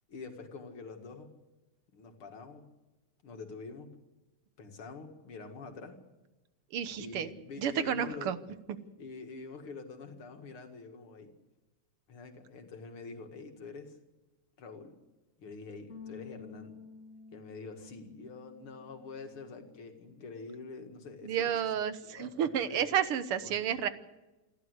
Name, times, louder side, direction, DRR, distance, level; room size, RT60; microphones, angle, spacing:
voice 1, 0.1-1.3 1.9-2.6 3.2-4.0 4.6-6.0 7.0-8.3 9.0-11.3 12.1-14.0 14.6-15.0 15.4-16.8 17.3-21.7 22.1-22.9 23.4-23.8, left 4 dB, 75° left, 5 dB, 2.9 m, -46 dB
voice 2, 6.7-7.3 7.6-8.4 21.2-23.9, right 9 dB, 85° right, 12 dB, 2.0 m, -31 dB
Bass guitar, 15.9-22.1, left 5 dB, 40° left, 2.7 m, -53 dB
28.0 x 12.0 x 8.1 m, 1.1 s
omnidirectional pair, 2.4 m